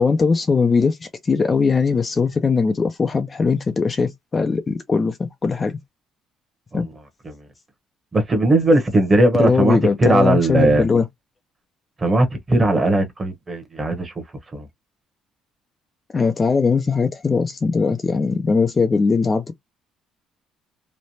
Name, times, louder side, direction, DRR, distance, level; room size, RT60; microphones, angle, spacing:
voice 1, 0.0-5.7 6.7-6.9 9.3-11.1 16.1-19.5, left 4 dB, 25° left, 0.4 m, -20 dB
voice 2, 8.1-10.8 12.0-14.1 14.5-14.7, right 2 dB, 20° right, 0.9 m, -18 dB
3.1 x 2.1 x 2.7 m
cardioid pair, 135°, 0 cm